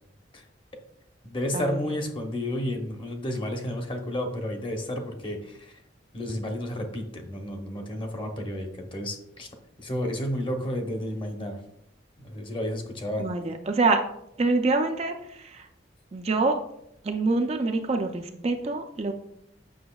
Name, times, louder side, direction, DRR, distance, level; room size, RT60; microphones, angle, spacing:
voice 1, 1.2-5.8 6.1-9.5 9.8-11.6 12.2-13.3, left 1 dB, 25° left, 3 dB, 0.9 m, -31 dB
voice 2, 13.2-14.0 14.4-15.7 16.1-16.6 17.0-19.1, right 3 dB, 35° right, 5 dB, 0.4 m, -25 dB
7.8 x 6.1 x 2.3 m, 0.76 s
head